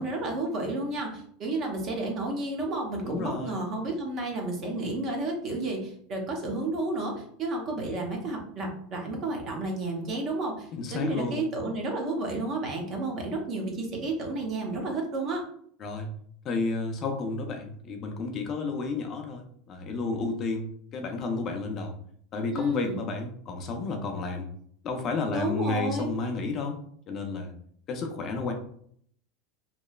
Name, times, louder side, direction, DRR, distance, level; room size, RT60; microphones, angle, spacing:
voice 1, 0.0-15.4 22.5-23.0 25.3-26.1, right 2 dB, 40° right, 1 dB, 0.8 m, -31 dB
voice 2, 3.0-3.6 10.7-11.5 15.8-16.1 16.4-22.0 22.3-24.5 24.8-26.8 27.1-27.5 27.9-28.5, left 3 dB, 40° left, 4 dB, 0.4 m, -31 dB
3.0 x 2.0 x 2.3 m, 0.62 s
supercardioid pair, 125°, 0 cm